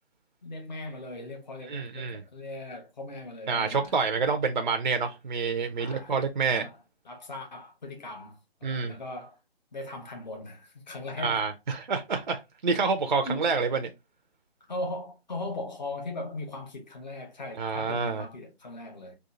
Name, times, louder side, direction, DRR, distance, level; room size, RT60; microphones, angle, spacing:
voice 1, 0.4-4.0 5.8-6.1 6.5-6.8 7.0-9.4 9.7-11.5 13.2-13.5 14.7-19.2, left 2 dB, 45° left, 1.0 m, -39 dB
voice 2, 1.7-2.2 3.5-6.7 8.6-8.9 11.2-13.8 17.6-18.2, right 4 dB, 50° right, 0.4 m, -28 dB
3.8 x 2.4 x 2.4 m
figure-of-eight pair, 150°, 31 cm